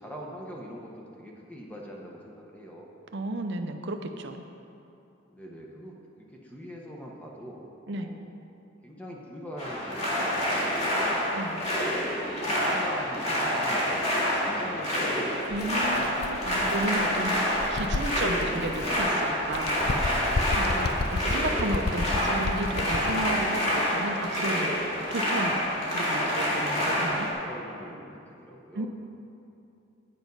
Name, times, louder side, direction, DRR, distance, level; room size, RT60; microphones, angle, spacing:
voice 1, 0.0-3.0 5.3-8.3 8.8-11.3 12.1-16.4 20.5-21.3 26.6-28.9, equal, 5° left, -2 dB, 0.9 m, -43 dB
voice 2, 3.1-4.4 7.9-8.1 11.3-11.6 15.5-19.8 20.5-24.8 25.1-25.6 25.9-27.3 28.7-28.9, right 2 dB, 55° right, 6 dB, 0.6 m, -33 dB
sound 1, 9.6-27.3, equal, 30° left, 2.0 m, -27 dB
Bird, 15.5-19.1 19.5-23.3, left 3 dB, 50° left, 0.4 m, -33 dB
9.4 x 7.1 x 5.3 m, 2.7 s
head